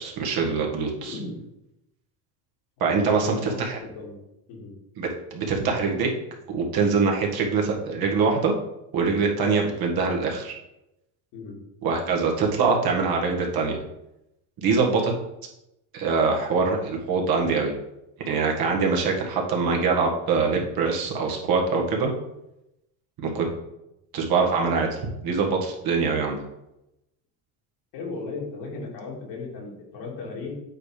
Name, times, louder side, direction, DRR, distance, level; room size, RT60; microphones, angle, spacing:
voice 1, 0.0-1.2 2.8-3.8 5.0-6.1 6.5-8.5 8.9-10.6 11.8-13.8 14.6-15.1 15.9-17.7 18.2-22.1 23.2-23.5 24.1-25.0 25.2-26.4, right 4 dB, 60° right, 0 dB, 1.8 m, -23 dB
voice 2, 0.9-1.4 2.8-4.2 4.5-4.7 11.3-11.6 23.2-23.4 27.9-30.5, left 3 dB, 75° left, -2 dB, 2.7 m, -36 dB
8.6 x 3.4 x 5.0 m, 0.88 s
supercardioid pair, 85°, 41 cm